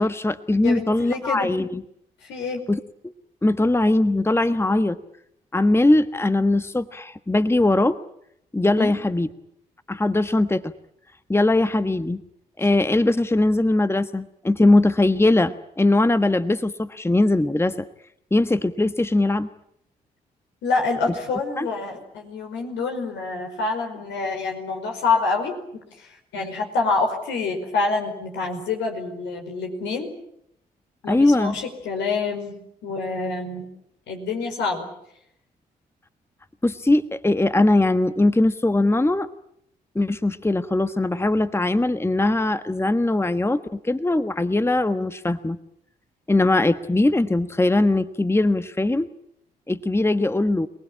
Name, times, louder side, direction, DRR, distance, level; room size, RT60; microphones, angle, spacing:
voice 1, 0.0-1.8 2.7-2.8 3.4-5.0 5.5-8.0 8.5-9.3 9.9-10.7 11.3-12.2 12.6-17.8 18.3-19.5 21.6-21.7 31.1-31.6 36.6-39.3 39.9-45.6 46.3-49.1 49.7-50.7, left 2 dB, 15° left, 12 dB, 1.3 m, -20 dB
voice 2, 0.6-1.5 2.3-2.7 8.8-8.9 20.6-25.6 26.0-30.1 31.0-32.6 32.8-33.6 34.1-34.9, left 4 dB, 75° left, 3 dB, 5.2 m, -26 dB
27.5 x 19.5 x 8.7 m, 0.74 s
hypercardioid pair, 45°, 19 cm